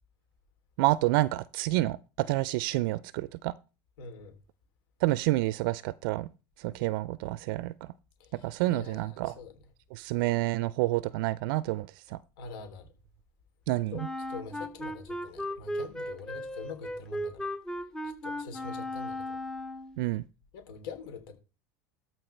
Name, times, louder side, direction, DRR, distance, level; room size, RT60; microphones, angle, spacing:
voice 1, 0.8-3.5 5.0-6.3 6.6-7.7 8.4-9.3 9.9-12.2 13.7-14.1 20.0-20.2, right 18 dB, 70° right, 0.4 m, -28 dB
voice 2, 4.0-4.3 8.2-9.5 12.4-12.9 13.9-14.0 14.3-17.5 18.0-19.4 20.5-21.3, left 4 dB, 75° left, 3.2 m, -44 dB
Wind instrument woodwind instrument, 13.9-20.0, left 1 dB, 5° left, 0.8 m, -36 dB
13.5 x 4.6 x 4.4 m
supercardioid pair, 115°, 12 cm